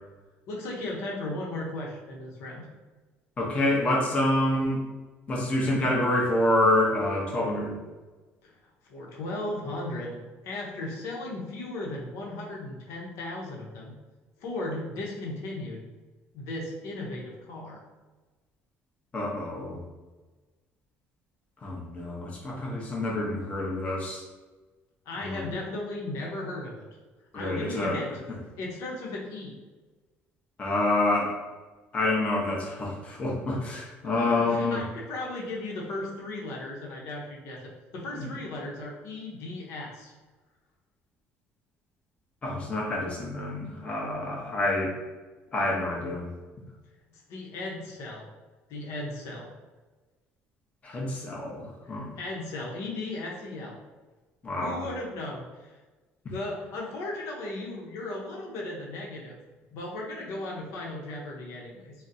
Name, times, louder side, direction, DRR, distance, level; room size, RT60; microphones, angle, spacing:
voice 1, 0.5-2.7 8.4-8.5 8.9-10.2 10.4-13.9 14.4-15.8 16.3-17.8 25.1-26.8 27.3-28.1 28.6-29.6 34.0-40.1 47.1-48.3 48.7-49.5 51.8-53.8 54.5-55.7 56.3-59.4 59.7-61.9, left 2 dB, 80° left, -2 dB, 0.7 m, -36 dB
voice 2, 3.4-4.8 5.3-7.7 19.1-19.8 21.6-24.2 25.3-25.5 27.3-28.0 30.6-31.3 31.9-34.8 38.2-38.3 42.4-44.9 45.5-46.3 50.8-52.1 54.4-54.8, left 1 dB, 25° left, -2 dB, 0.7 m, -27 dB
3.9 x 2.0 x 2.6 m, 1.2 s
cardioid pair, 130°, 5 cm